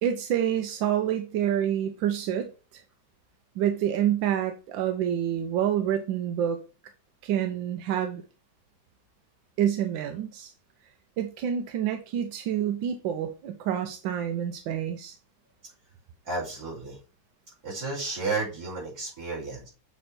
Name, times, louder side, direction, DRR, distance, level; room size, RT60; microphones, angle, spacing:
voice 1, 0.0-2.8 3.6-6.6 7.2-8.2 9.6-10.5 11.2-15.1, right 10 dB, 90° right, 1.4 m, -27 dB
voice 2, 16.3-17.0 17.6-19.7, right 3 dB, 55° right, 3.7 m, -32 dB
7.6 x 3.1 x 4.1 m
omnidirectional pair, 2.0 m